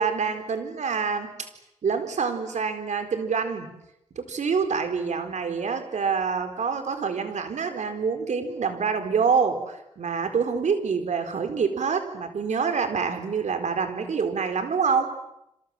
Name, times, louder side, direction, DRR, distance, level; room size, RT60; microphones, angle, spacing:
voice 1, 0.0-1.5 1.8-3.7 4.2-15.1, right 5 dB, 80° right, 7 dB, 4.3 m, -26 dB
28.0 x 27.0 x 7.6 m, 0.84 s
cardioid pair, 40°, 12 cm